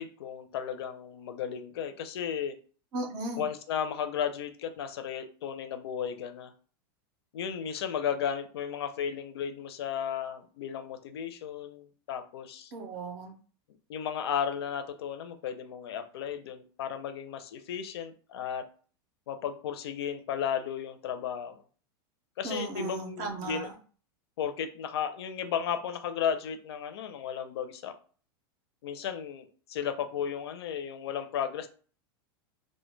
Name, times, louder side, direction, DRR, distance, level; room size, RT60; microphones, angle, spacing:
voice 1, 0.0-2.5 3.4-6.5 7.3-12.7 13.9-18.6 19.3-21.6 22.4-23.7 24.4-27.9 28.8-31.7, left 8 dB, 90° left, 8 dB, 0.5 m, -34 dB
voice 2, 2.9-3.4 12.7-13.3 22.4-23.7, right 3 dB, 30° right, 4 dB, 0.4 m, -36 dB
2.1 x 2.1 x 3.1 m, 0.41 s
supercardioid pair, 175°, 13 cm